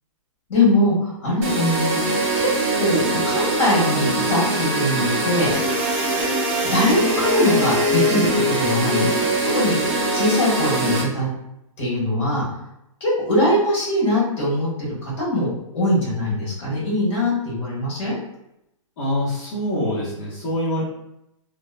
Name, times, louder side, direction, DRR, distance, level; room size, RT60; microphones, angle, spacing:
voice 1, 0.5-2.0 2.4-5.5 6.7-9.1 9.5-11.3 11.8-12.4 13.0-18.1, left 1 dB, 60° left, -4 dB, 1.4 m, -22 dB
sound 1, 1.4-11.0, right 1 dB, 30° right, 0.6 m, -22 dB
voice 2, 19.0-20.8, left 1 dB, 35° left, -8 dB, 0.7 m, -25 dB
2.8 x 2.0 x 2.3 m, 0.83 s
hypercardioid pair, 170°, 17 cm